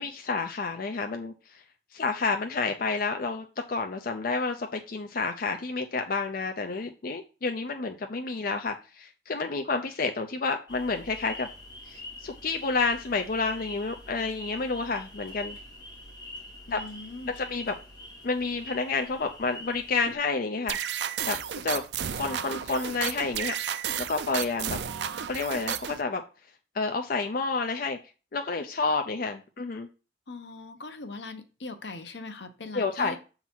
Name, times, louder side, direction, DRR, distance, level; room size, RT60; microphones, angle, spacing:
voice 1, 0.0-1.6 1.9-11.5 11.9-15.6 16.7-16.8 17.2-17.7 18.2-20.8 21.3-21.4 21.6-21.8 22.1-23.5 24.1-24.8 25.3-26.2 26.7-28.0 28.3-29.9 32.7-33.2, left 4 dB, 55° left, 5 dB, 0.6 m, -30 dB
sound 1, 10.7-20.2, left 1 dB, 25° left, 2.5 m, -44 dB
voice 2, 16.7-17.4 30.3-33.2, left 3 dB, 75° left, 8 dB, 0.9 m, -41 dB
sound 2, 20.7-26.0, right 8 dB, 75° right, 0.5 m, -32 dB
7.0 x 4.0 x 4.4 m, 0.33 s
head